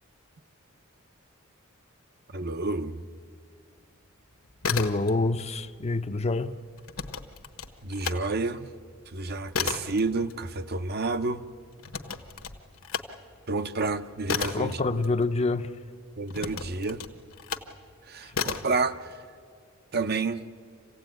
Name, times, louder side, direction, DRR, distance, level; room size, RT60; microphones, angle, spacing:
voice 1, 2.3-3.0 7.8-8.7 9.1-11.4 13.5-15.0 16.2-17.0 18.0-19.1 19.9-20.4, right 3 dB, 45° right, 0.7 m, -30 dB
sound 1, 4.4-5.4 5.7-8.2 8.6-15.6 16.3-17.8 18.3-18.8, left 6 dB, 70° left, 1.2 m, -34 dB
voice 2, 4.7-6.5 14.5-15.7, left 3 dB, 30° left, 0.6 m, -26 dB
27.0 x 16.5 x 9.1 m
head